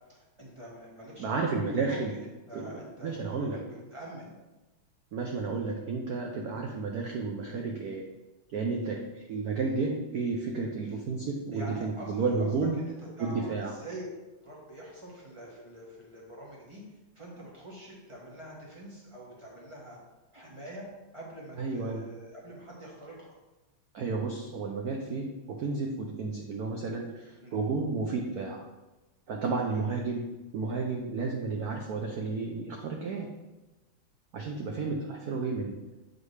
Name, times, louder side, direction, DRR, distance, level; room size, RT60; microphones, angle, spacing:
voice 1, 0.1-2.2 2.5-4.3 11.5-14.1 14.4-16.8 17.1-20.0 20.3-20.9 21.1-23.4 27.4-27.6 29.6-29.8, right 1 dB, 20° right, -4 dB, 0.9 m, -45 dB
voice 2, 1.2-2.1 2.5-3.6 5.1-8.1 8.5-12.8 13.2-13.7 21.6-22.0 23.9-28.7 29.3-30.2 30.5-33.3 34.3-35.8, right 4 dB, 90° right, 1 dB, 0.8 m, -32 dB
7.2 x 4.1 x 3.2 m, 1.1 s
omnidirectional pair, 2.4 m